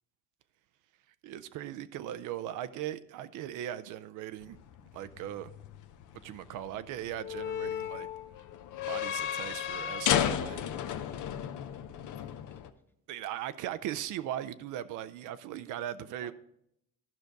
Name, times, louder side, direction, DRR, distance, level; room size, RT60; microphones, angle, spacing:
voice 1, 1.2-4.6 4.9-5.5 6.2-8.1 8.9-10.6 13.1-16.3, right 12 dB, 85° right, 0.5 m, -38 dB
sound 1, 4.4-12.7, left 10 dB, 80° left, 0.7 m, -34 dB
voice 2, 10.9-12.6 16.2-16.3, left 1 dB, 5° left, 1.0 m, -60 dB
12.5 x 5.2 x 4.6 m
cardioid pair, 95°, 30 cm